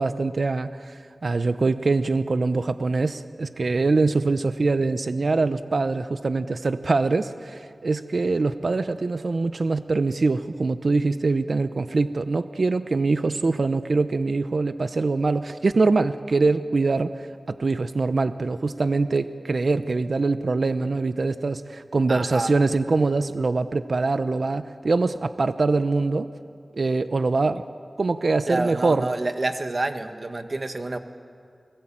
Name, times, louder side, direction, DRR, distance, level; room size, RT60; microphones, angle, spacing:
voice 1, 0.0-26.3 26.7-27.6 28.0-29.1, right 3 dB, 70° right, 11 dB, 0.8 m, -23 dB
voice 2, 22.1-22.5 28.5-31.0, right 2 dB, 55° right, 7 dB, 1.7 m, -28 dB
29.5 x 20.0 x 8.8 m, 2.4 s
wide cardioid pair, 60°, 0 cm